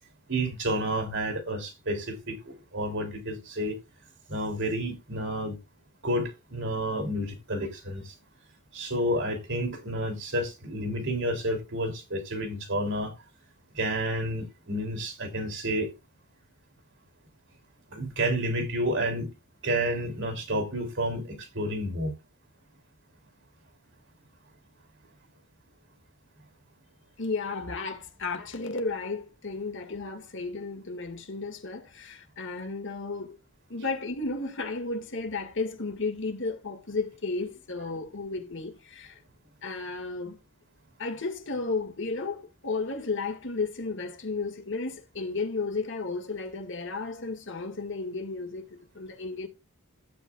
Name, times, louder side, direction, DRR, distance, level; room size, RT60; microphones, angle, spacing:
voice 1, 0.3-3.8 4.3-5.6 6.0-8.1 8.7-13.1 13.7-15.9 17.9-19.3 19.6-22.1, right 1 dB, 55° right, 3.0 m, -30 dB
voice 2, 27.2-33.4 33.7-39.2 39.6-40.4 41.0-49.5, left 3 dB, 55° left, 2.0 m, -33 dB
14.5 x 8.8 x 2.4 m
head